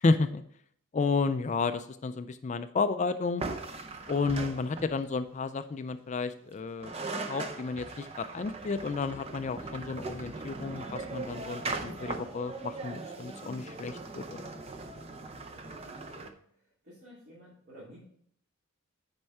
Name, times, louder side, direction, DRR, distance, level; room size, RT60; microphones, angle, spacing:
voice 1, 0.0-0.4 0.9-3.4 4.1-6.9 7.3-14.5, left 4 dB, 30° left, 11 dB, 0.3 m, -31 dB
sound 1, 3.4-5.2 6.5-6.6 6.8-16.3, right 3 dB, 25° right, 0.6 m, -39 dB
voice 2, 14.8-18.0, equal, 45° right, -8 dB, 3.0 m, -55 dB
9.7 x 4.4 x 4.3 m, 0.65 s
head